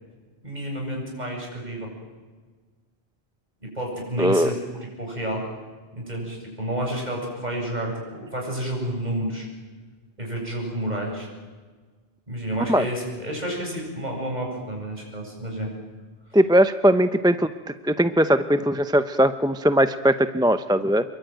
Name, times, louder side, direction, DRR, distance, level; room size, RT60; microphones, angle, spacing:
voice 1, 0.4-1.9 3.6-4.6 5.0-5.5 5.9-9.5 10.2-11.3 12.3-15.7 16.3-16.4, right 1 dB, 40° right, -1 dB, 8.2 m, -30 dB
voice 2, 4.2-4.5 12.7-12.8 16.3-17.5 17.8-21.0, equal, 5° right, 10 dB, 0.6 m, -19 dB
27.5 x 22.5 x 9.3 m, 1.4 s
omnidirectional pair, 1.1 m